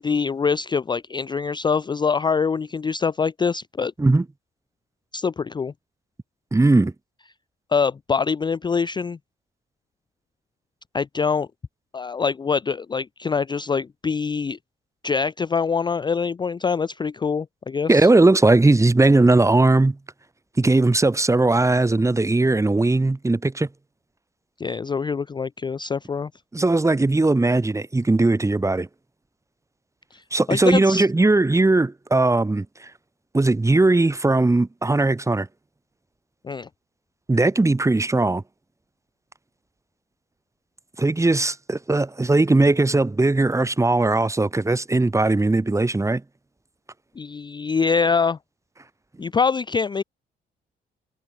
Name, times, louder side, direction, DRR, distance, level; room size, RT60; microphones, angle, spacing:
voice 1, 0.0-3.9 5.1-5.7 7.7-9.2 10.9-11.5 11.9-14.6 15.0-18.1 24.6-26.3 30.1-30.2 30.5-31.1 36.4-36.7 47.2-48.4 49.2-50.0, left 5 dB, 20° left, 0.4 m, -24 dB
voice 2, 6.5-6.9 17.9-20.0 20.6-23.7 26.5-28.9 30.3-32.6 33.3-35.5 37.3-38.4 41.0-46.2, right 2 dB, 15° right, 1.5 m, -19 dB
cardioid pair, 90°, 20 cm